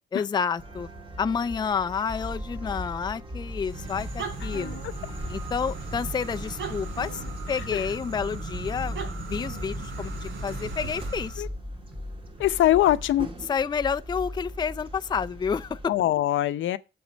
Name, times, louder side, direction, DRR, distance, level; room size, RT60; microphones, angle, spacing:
voice 1, 0.1-0.9 1.2-4.8 5.3-9.0 9.3-11.5 13.4-15.9, left 6 dB, 20° left, 0.4 m, -29 dB
sound 1, 0.6-15.9, equal, 25° right, 2.4 m, -40 dB
sound 2, 2.1-13.3, left 2 dB, 5° right, 2.4 m, -41 dB
sound 3, 3.6-11.5, right 4 dB, 75° right, 3.6 m, -37 dB
voice 2, 12.4-13.3 15.9-16.8, left 13 dB, 75° left, 0.8 m, -22 dB
7.9 x 7.2 x 5.2 m
cardioid pair, 90°, 20 cm